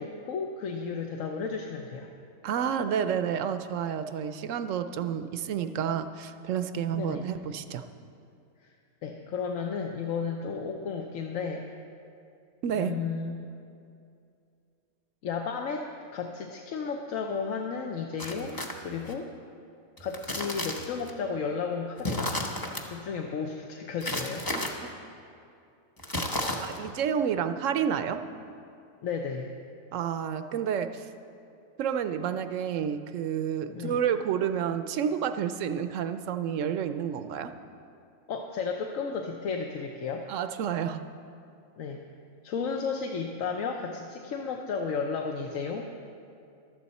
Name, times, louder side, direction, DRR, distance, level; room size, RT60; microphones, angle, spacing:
voice 1, 0.0-2.1 6.9-7.2 9.0-11.7 12.7-13.4 15.2-19.3 20.0-22.4 22.9-24.4 29.0-29.5 33.7-34.0 38.3-40.3 41.8-42.0 42.4-46.0, left 5 dB, 70° left, 2 dB, 1.1 m, -33 dB
voice 2, 2.4-7.8 12.6-13.0 24.5-24.9 26.6-28.2 29.9-31.1 31.8-37.5 40.3-41.1, right 8 dB, 70° right, 10 dB, 0.9 m, -30 dB
sound 1, 18.2-19.1 20.0-21.1 22.0-22.8 24.0-24.7 26.0-26.9, left 1 dB, 20° left, 0.7 m, -33 dB
15.0 x 12.0 x 4.2 m, 2.5 s
omnidirectional pair, 1.5 m